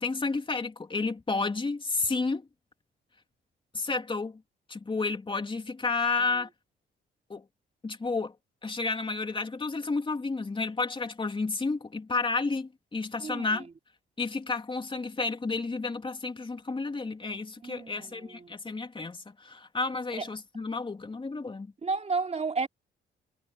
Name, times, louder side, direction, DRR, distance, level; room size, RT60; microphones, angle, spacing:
voice 1, 0.0-2.5 3.7-4.4 4.7-6.5 7.3-7.4 7.8-8.3 8.6-13.7 14.2-21.7, left 3 dB, 25° left, 3.3 m, -31 dB
voice 2, 13.2-13.7 17.6-18.5 20.2-20.3 21.8-22.7, right 4 dB, 35° right, 3.4 m, -32 dB
cardioid pair, 90°, 20 cm